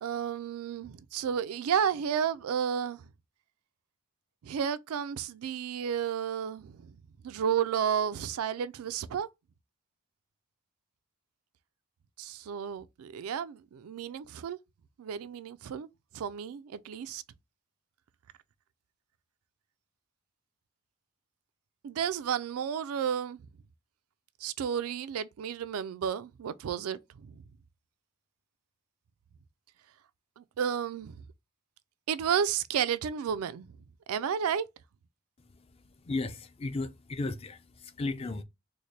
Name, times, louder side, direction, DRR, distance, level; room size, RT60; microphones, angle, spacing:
voice 1, 0.0-3.1 4.4-6.9 7.2-9.3 12.2-14.6 15.0-15.9 16.1-17.2 21.8-23.4 24.4-27.4 30.4-31.2 32.1-33.7 34.1-34.7, right 8 dB, 85° right, 0.3 m, -32 dB
voice 2, 35.9-38.4, left 2 dB, 25° left, 0.3 m, -35 dB
4.0 x 2.1 x 3.2 m
head